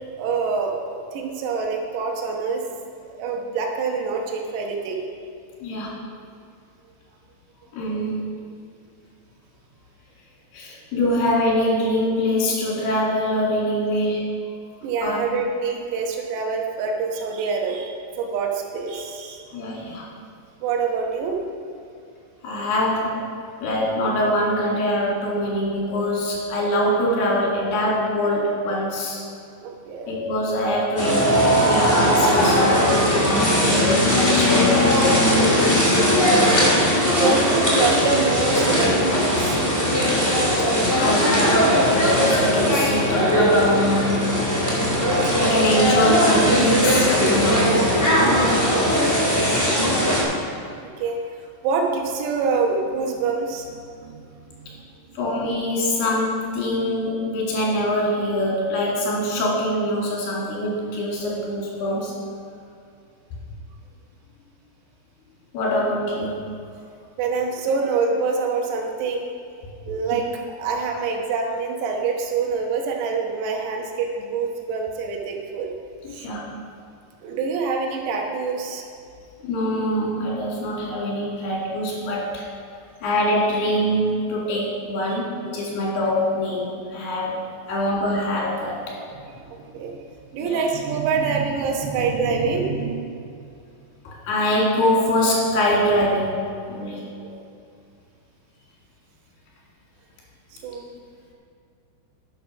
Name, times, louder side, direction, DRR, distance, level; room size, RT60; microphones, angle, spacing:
voice 1, 0.2-2.6 3.1-5.0 14.8-19.4 20.6-21.4 29.6-30.1 36.4-36.7 37.2-39.6 48.2-49.0 49.4-49.6 50.8-54.9 67.2-69.3 69.9-75.7 76.1-76.3 77.2-78.8 85.1-85.2 89.4-93.2 97.2-97.4 100.6-100.8, right 5 dB, 75° right, 0 dB, 3.1 m, -26 dB
voice 2, 5.6-6.0 7.7-8.3 10.5-14.3 15.0-15.3 19.5-20.1 22.4-23.2 23.6-29.2 30.1-34.7 37.1-37.3 40.9-41.6 41.9-44.3 45.4-47.9 55.2-62.1 65.5-66.4 70.1-70.2 76.0-76.5 79.4-82.4 83.0-87.4 87.7-89.0 90.4-90.6 94.1-96.4 96.7-97.0, left 1 dB, 60° left, -4 dB, 4.1 m, -24 dB
sound 1, 31.0-50.2, equal, 10° left, 1.1 m, -19 dB
10.0 x 7.5 x 6.0 m, 2.4 s
omnidirectional pair, 5.4 m